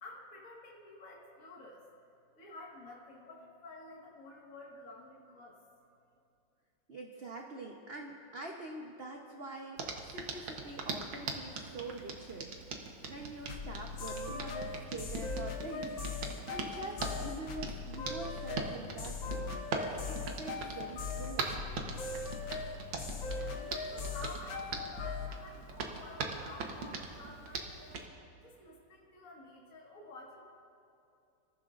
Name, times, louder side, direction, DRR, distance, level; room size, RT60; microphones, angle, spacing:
voice 1, 0.0-1.8 2.4-5.6 23.2-28.0 28.4-30.4, left 2 dB, 45° left, -4 dB, 2.1 m, -51 dB
voice 2, 6.9-12.5 13.1-16.0 16.5-19.7 20.1-21.6, right 2 dB, 45° right, 1 dB, 0.8 m, -45 dB
Hands, 9.8-28.1, right 4 dB, 85° right, 2.0 m, -42 dB
sound 1, 13.5-25.4, left 4 dB, 80° left, 1.9 m, -39 dB
27.5 x 14.5 x 2.5 m, 2.7 s
omnidirectional pair, 2.1 m